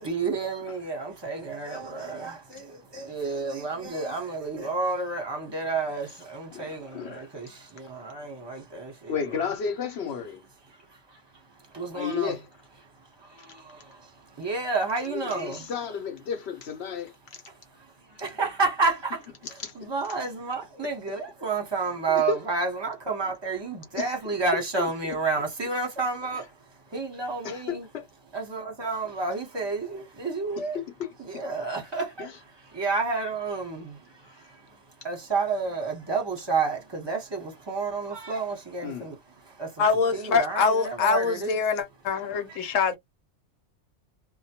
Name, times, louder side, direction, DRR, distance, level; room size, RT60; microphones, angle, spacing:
voice 1, 0.0-2.6 2.9-7.5 7.8-9.5 11.7-12.3 14.4-15.7 18.2-19.2 19.8-26.4 26.9-27.9 28.3-30.8 31.2-32.3 32.7-33.9 35.0-39.1 39.6-39.7 40.1-41.6, right 4 dB, 25° right, 0.8 m, -30 dB
voice 2, 6.5-7.3 9.1-10.4 11.9-12.5 15.0-17.4 19.4-19.7 22.1-22.4 23.9-24.4 24.8-25.1 27.4-28.0 30.6-31.4 32.2-32.3 34.3-34.5 38.8-39.1, left 6 dB, 60° left, 1.0 m, -33 dB
voice 3, 39.8-43.0, left 5 dB, 85° left, 1.1 m, -24 dB
2.2 x 2.2 x 2.8 m
omnidirectional pair, 1.3 m